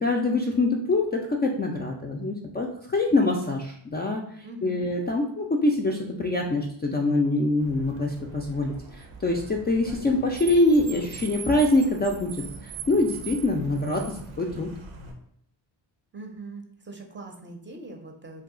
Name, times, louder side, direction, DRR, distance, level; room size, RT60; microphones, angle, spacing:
voice 1, 0.0-4.2 4.6-12.3 12.6-14.7, left 2 dB, 25° left, 0 dB, 0.3 m, -24 dB
voice 2, 4.4-4.9 16.1-18.4, right 2 dB, 25° right, 3 dB, 0.6 m, -41 dB
Car, 7.6-15.1, right 5 dB, 80° right, 0.7 m, -41 dB
2.7 x 2.3 x 3.7 m, 0.67 s
cardioid pair, 80°, 46 cm